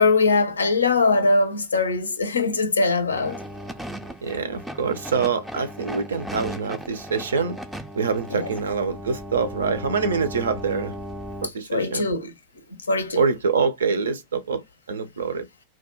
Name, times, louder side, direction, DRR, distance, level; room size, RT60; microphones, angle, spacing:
voice 1, 0.0-3.4 8.3-8.5 11.7-12.3 12.9-13.2, left 3 dB, 75° left, 0.4 m, -21 dB
sound 1, 3.1-11.5, equal, ahead, 0.4 m, -36 dB
voice 2, 4.2-7.6 7.9-10.9 11.4-12.1 13.2-14.6 14.9-15.5, right 5 dB, 70° right, 0.5 m, -25 dB
2.3 x 2.1 x 2.8 m
figure-of-eight pair, 90°, 0 cm